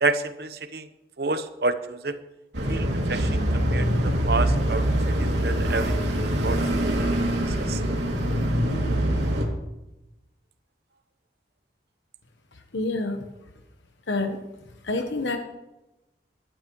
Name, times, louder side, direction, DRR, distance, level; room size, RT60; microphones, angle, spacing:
voice 1, 0.0-0.9 1.2-2.2 2.7-4.9 5.2-5.9 6.4-6.9 7.5-7.8, right 3 dB, 60° right, 10 dB, 0.9 m, -29 dB
sound 1, 2.5-9.4, right 1 dB, 85° right, 2.7 m, -24 dB
voice 2, 12.5-13.3 14.1-14.4 14.8-15.4, left 2 dB, 85° left, 5 dB, 1.1 m, -28 dB
17.5 x 12.5 x 3.1 m, 0.97 s
head